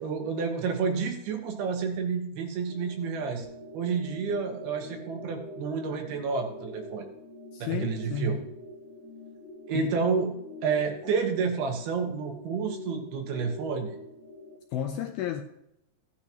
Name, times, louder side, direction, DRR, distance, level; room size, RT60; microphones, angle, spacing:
voice 1, 0.0-3.5 3.7-7.1 7.6-8.4 9.7-10.3 10.6-14.0, right 5 dB, 70° right, 3 dB, 3.2 m, -30 dB
sound 1, 2.7-14.6, left 1 dB, 60° left, 1.7 m, -44 dB
voice 2, 7.5-8.4 9.7-9.9 14.7-15.4, left 9 dB, 80° left, 5 dB, 2.2 m, -32 dB
16.0 x 9.6 x 3.0 m, 0.83 s
omnidirectional pair, 4.9 m